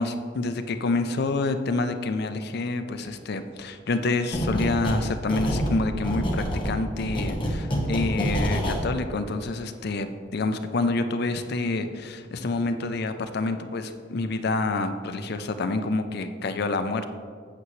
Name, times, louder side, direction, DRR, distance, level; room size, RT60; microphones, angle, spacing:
voice 1, 0.0-17.0, left 3 dB, 60° left, 8 dB, 0.5 m, -28 dB
sound 1, 4.3-5.0 5.3-8.8, equal, 25° left, 1.1 m, -26 dB
8.4 x 7.7 x 3.1 m, 2.1 s
head